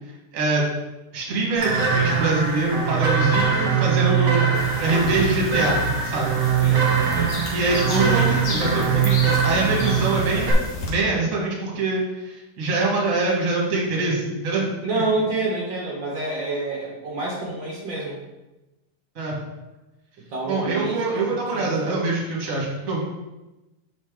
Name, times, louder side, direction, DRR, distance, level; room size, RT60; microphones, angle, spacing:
voice 1, 1.1-4.4 4.8-6.4 7.5-15.0 19.1-19.3 20.4-23.1, right 2 dB, 40° right, -3 dB, 1.1 m, -24 dB
sound 1, 1.6-10.5, right 6 dB, 60° right, 1.4 m, -22 dB
voice 2, 3.9-5.3 6.6-7.4 14.8-18.2 20.3-21.3 21.5-22.0, right 2 dB, 80° right, -3 dB, 1.0 m, -29 dB
sound 2, 4.5-10.9, left 1 dB, 55° left, 2.0 m, -32 dB
6.5 x 5.3 x 3.7 m, 1.0 s
omnidirectional pair, 3.8 m